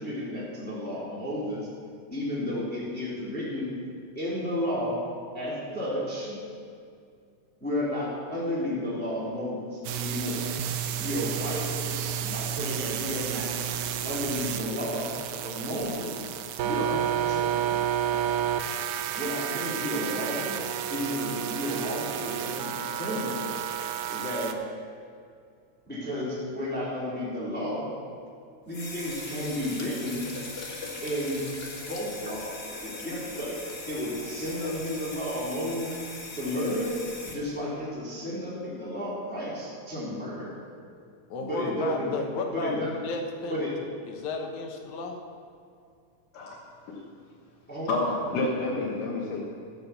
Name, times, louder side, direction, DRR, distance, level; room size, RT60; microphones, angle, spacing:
voice 1, 0.0-1.7 2.1-3.7 4.1-5.0 5.3-6.4 7.6-10.5 11.0-13.5 14.0-15.1 15.4-16.2 16.6-18.3 19.1-20.6 20.9-23.4 24.1-24.6 25.9-27.9 28.7-30.3 31.0-31.4 31.9-35.9 36.3-36.9 37.2-40.6 41.4-42.2 42.5-42.9 43.5-43.7 47.7-48.0, left 1 dB, 5° left, -8 dB, 3.1 m, -32 dB
sound 1, 9.8-24.5, right 9 dB, 80° right, 2.0 m, -31 dB
sound 2, 28.7-37.3, left 2 dB, 50° left, 0.7 m, -40 dB
voice 2, 41.3-43.7 44.1-45.2, left 3 dB, 70° left, 3 dB, 2.5 m, -33 dB
voice 3, 47.9-49.4, left 2 dB, 90° left, -4 dB, 3.0 m, -29 dB
14.0 x 7.8 x 6.9 m, 2.3 s
omnidirectional pair, 3.7 m